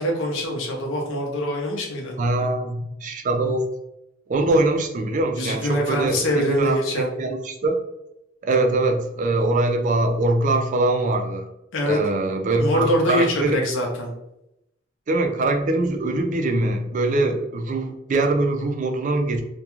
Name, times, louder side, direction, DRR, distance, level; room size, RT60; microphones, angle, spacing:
voice 1, 0.0-2.2 5.4-7.1 11.7-12.0 12.6-14.1, left 1 dB, 80° left, 0 dB, 0.6 m, -24 dB
voice 2, 2.2-3.7 4.3-7.8 8.4-11.5 11.8-13.6 15.1-19.4, right 2 dB, 40° right, 4 dB, 0.4 m, -23 dB
2.3 x 2.2 x 2.9 m, 0.84 s
head